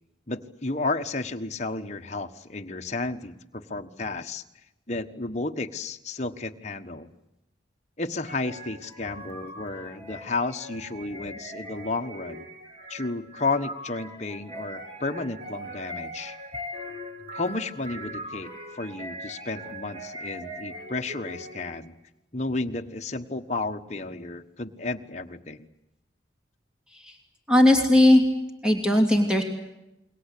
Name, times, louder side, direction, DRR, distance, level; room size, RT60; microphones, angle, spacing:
voice 1, 0.3-4.4 4.9-7.1 8.0-12.4 12.9-16.4 17.3-21.9 22.3-25.7, left 3 dB, 35° left, 5 dB, 1.2 m, -32 dB
sound 1, 8.3-21.9, equal, 30° right, 3.3 m, -41 dB
voice 2, 27.5-28.2 28.6-29.4, left 1 dB, 5° right, 3 dB, 2.9 m, -18 dB
28.5 x 22.5 x 8.5 m, 0.93 s
head